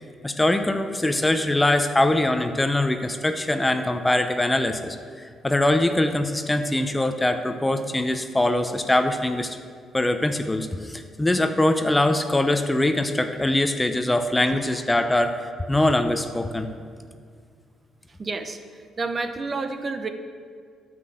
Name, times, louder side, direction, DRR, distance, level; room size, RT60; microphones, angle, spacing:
voice 1, 0.2-5.0 5.4-9.6 9.9-15.3 15.7-16.7, left 1 dB, 15° left, 7 dB, 0.6 m, -22 dB
voice 2, 18.2-18.6 19.0-20.1, right 3 dB, 35° right, 8 dB, 0.8 m, -29 dB
9.8 x 6.0 x 7.7 m, 2.1 s
cardioid pair, 90°, 0 cm